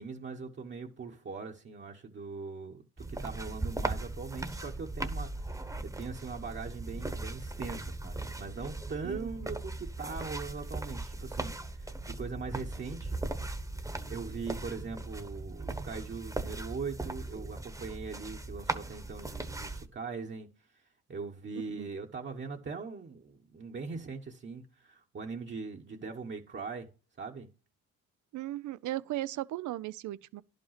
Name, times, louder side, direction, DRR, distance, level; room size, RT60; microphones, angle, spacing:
voice 1, 0.0-2.8 3.1-5.5 5.8-13.2 14.1-20.5 21.1-26.9 27.2-27.5, right 4 dB, 40° right, 1.2 m, -41 dB
sound 1, 3.0-19.9, right 2 dB, 10° right, 1.1 m, -38 dB
voice 2, 9.0-9.5 21.8-21.9 28.3-30.4, right 15 dB, 75° right, 0.6 m, -37 dB
11.0 x 5.3 x 5.8 m
cardioid pair, 90°, 30 cm